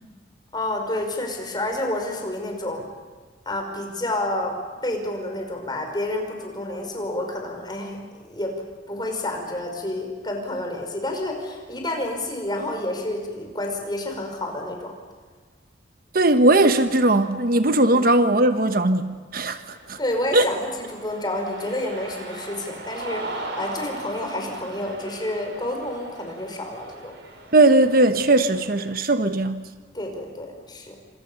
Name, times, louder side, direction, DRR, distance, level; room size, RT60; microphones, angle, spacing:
voice 1, 0.5-2.8 3.5-4.6 4.8-8.6 8.9-15.0 17.9-18.1 20.0-27.1 29.9-31.0, left 1 dB, 25° left, 3 dB, 5.3 m, -29 dB
voice 2, 16.1-20.0 20.3-20.5 27.5-29.7, right 2 dB, 55° right, 9 dB, 1.2 m, -19 dB
Cheering, 19.6-28.8, right 2 dB, 75° right, 5.7 m, -39 dB
28.5 x 26.5 x 7.0 m, 1.5 s
head